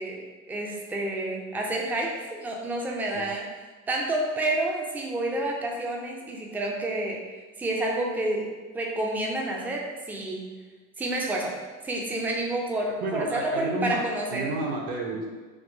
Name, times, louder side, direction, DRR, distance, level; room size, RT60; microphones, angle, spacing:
voice 1, 0.0-3.5 3.9-7.2 7.6-10.4 11.0-11.6 11.8-14.5, right 1 dB, 5° right, -1 dB, 0.3 m, -29 dB
voice 2, 13.0-14.0 14.3-15.3, right 2 dB, 50° right, 0 dB, 0.7 m, -30 dB
3.6 x 2.6 x 2.5 m, 1.4 s
hypercardioid pair, 75°, 42 cm